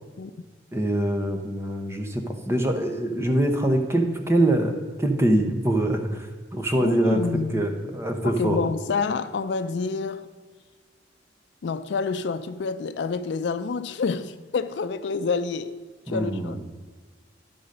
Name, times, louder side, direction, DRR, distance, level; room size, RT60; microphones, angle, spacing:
voice 1, 0.7-7.2 7.5-8.7 16.1-16.6, right 1 dB, 15° right, 5 dB, 0.7 m, -24 dB
voice 2, 6.8-7.7 8.2-10.3 11.6-16.6, left 4 dB, 65° left, 11 dB, 0.4 m, -28 dB
11.5 x 3.9 x 6.5 m, 1.5 s
head